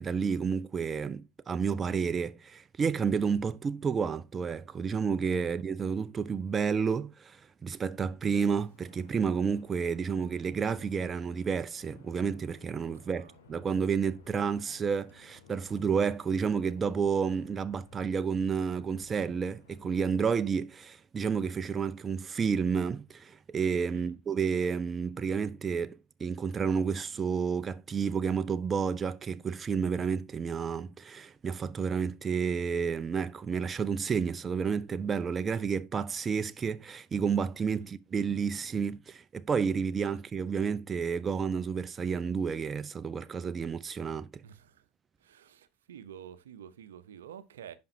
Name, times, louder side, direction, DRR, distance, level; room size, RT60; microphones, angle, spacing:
voice 1, 0.0-44.4, right 6 dB, 30° right, 0.4 m, -30 dB
Wind, 8.5-20.3, left 4 dB, 80° left, 2.0 m, -58 dB
voice 2, 44.4-44.8 45.2-47.7, right 9 dB, 80° right, 0.6 m, -49 dB
10.5 x 5.2 x 2.7 m
hypercardioid pair, 80°, 0 cm